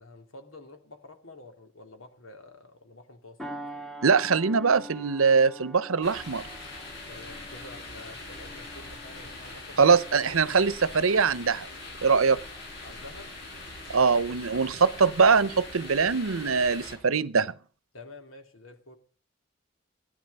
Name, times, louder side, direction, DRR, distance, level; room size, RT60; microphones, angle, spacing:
voice 1, 0.0-3.4 7.1-10.6 12.8-13.3 17.9-19.0, left 2 dB, 80° left, 3.0 m, -48 dB
sound 1, 3.4-12.2 12.7-12.9, equal, ahead, 2.3 m, -46 dB
voice 2, 4.0-6.4 9.8-11.7 12.0-12.4 13.9-17.5, right 5 dB, 90° right, 0.8 m, -22 dB
sound 2, 6.0-16.9, left 2 dB, 50° left, 7.4 m, -42 dB
16.5 x 10.0 x 5.5 m
head